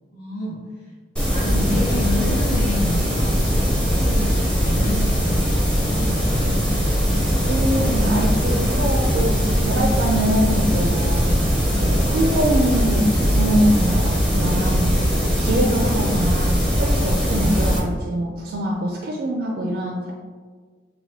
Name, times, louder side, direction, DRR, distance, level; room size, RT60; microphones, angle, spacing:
voice 1, 0.1-0.6 1.3-3.5 3.8-6.6, left 1 dB, 50° left, -10 dB, 0.9 m, -30 dB
sound 1, 1.2-17.8, equal, 5° left, 0.6 m, -20 dB
voice 2, 1.5-1.9 7.4-11.3 11.8-14.9 15.2-20.1, right 1 dB, 55° right, 0 dB, 0.4 m, -24 dB
5.7 x 2.2 x 2.7 m, 1.5 s
head